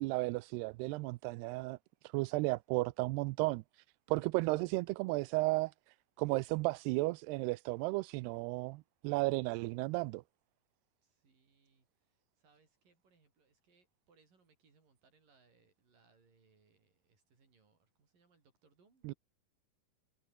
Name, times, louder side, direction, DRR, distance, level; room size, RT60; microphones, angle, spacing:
voice 1, 0.0-1.8 2.0-3.6 4.1-5.7 6.2-10.2 19.0-19.1, right 22 dB, 85° right, 2.6 m, -34 dB
voice 2, 11.0-19.1, right 4 dB, 55° right, 7.9 m, -71 dB
omnidirectional pair, 4.7 m